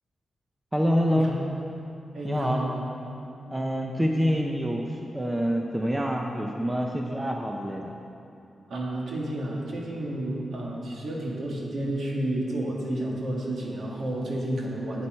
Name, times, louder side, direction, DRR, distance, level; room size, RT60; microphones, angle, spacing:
voice 1, 0.7-1.3 2.2-2.6 3.5-7.9, equal, 10° right, 1 dB, 0.5 m, -26 dB
voice 2, 2.1-2.8 8.7-15.1, right 1 dB, 60° right, -3 dB, 1.8 m, -31 dB
12.5 x 8.3 x 4.4 m, 2.8 s
wide cardioid pair, 180°, 0 cm